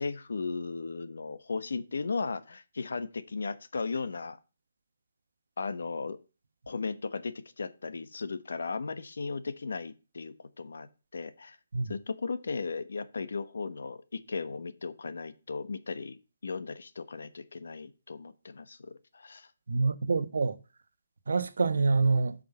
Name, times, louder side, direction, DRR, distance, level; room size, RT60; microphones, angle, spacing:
voice 1, 0.0-4.4 5.6-6.2 6.7-11.6 11.8-19.5, left 4 dB, 75° left, 1.1 m, -36 dB
voice 2, 19.7-20.6 21.3-22.3, right 4 dB, 70° right, 1.0 m, -26 dB
7.2 x 5.4 x 6.9 m
hypercardioid pair, 180°, 0 cm